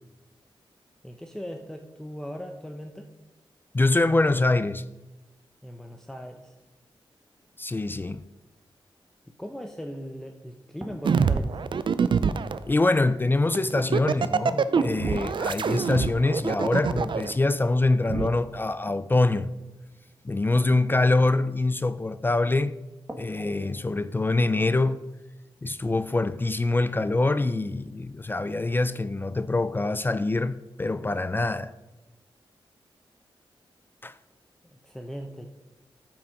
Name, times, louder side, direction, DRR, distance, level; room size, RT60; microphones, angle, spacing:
voice 1, 1.0-3.1 5.6-6.5 9.4-11.6 34.8-35.5, equal, 5° left, 0.9 m, -38 dB
voice 2, 3.7-4.9 7.6-8.3 12.7-19.5 20.2-22.8 23.2-25.1 25.6-31.7 34.0-34.2, left 2 dB, 20° left, 0.4 m, -24 dB
sound 1, 9.9-10.0 10.8-14.2 14.8-20.9 22.2-22.3 23.1-24.0, equal, 15° right, 1.8 m, -45 dB
sound 2, 11.0-12.6 13.5-17.3 18.1-18.3, right 6 dB, 60° right, 0.5 m, -25 dB
14.0 x 6.0 x 5.2 m
wide cardioid pair, 95°, 9 cm